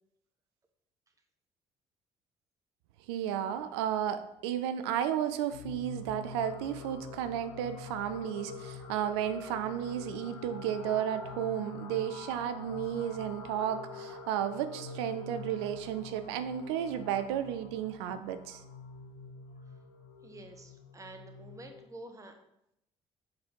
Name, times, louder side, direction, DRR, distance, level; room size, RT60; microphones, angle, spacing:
voice 1, 3.1-18.6, right 10 dB, 65° right, 10 dB, 0.5 m, -33 dB
sound 1, 5.5-21.9, left 4 dB, 70° left, 0.7 m, -46 dB
voice 2, 20.2-22.3, right 2 dB, 20° right, 5 dB, 1.2 m, -49 dB
7.5 x 4.0 x 4.5 m, 0.80 s
figure-of-eight pair, 50°, 15 cm